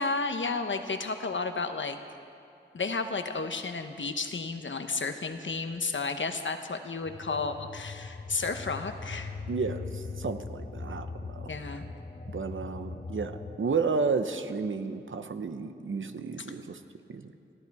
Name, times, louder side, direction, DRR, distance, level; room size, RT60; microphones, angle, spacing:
voice 1, 0.0-2.0 2.7-9.3 11.5-11.8, left 4 dB, 75° left, 7 dB, 1.0 m, -32 dB
sound 1, 7.0-13.6, left 4 dB, 35° left, 0.9 m, -40 dB
voice 2, 9.5-11.5 12.3-16.8 17.1-17.3, right 4 dB, 85° right, 9 dB, 0.8 m, -32 dB
21.0 x 13.5 x 4.8 m, 2.5 s
wide cardioid pair, 65°, 20 cm